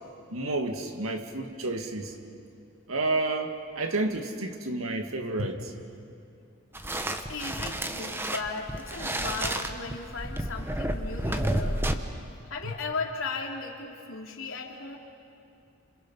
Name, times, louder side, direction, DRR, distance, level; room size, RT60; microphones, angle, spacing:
voice 1, 0.3-2.1 2.9-5.7 12.6-12.7, right 2 dB, 90° right, 5 dB, 2.0 m, -30 dB
sound 1, 6.7-11.9, right 1 dB, 10° right, 1.0 m, -30 dB
voice 2, 7.1-11.9 12.5-15.0, left 4 dB, 75° left, 1 dB, 2.9 m, -36 dB
30.0 x 27.0 x 5.6 m, 2.6 s
head